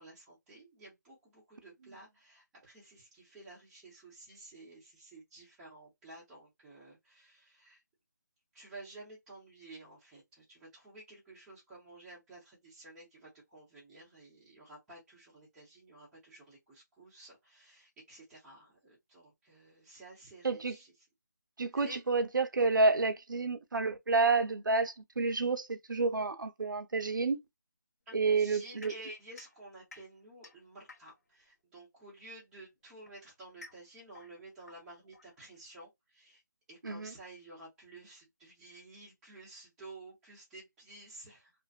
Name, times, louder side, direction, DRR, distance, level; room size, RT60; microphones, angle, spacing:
voice 1, 0.0-7.8 8.5-20.9 21.7-22.0 28.1-36.4 36.7-41.5, right 2 dB, 5° right, 0.8 m, -52 dB
voice 2, 20.4-20.8 21.6-27.4 28.1-28.9 36.8-37.1, right 3 dB, 90° right, 0.6 m, -29 dB
sound 1, 28.8-31.4 32.4-35.8, left 3 dB, 55° left, 0.9 m, -56 dB
2.5 x 2.3 x 2.2 m
figure-of-eight pair, 170°, 10 cm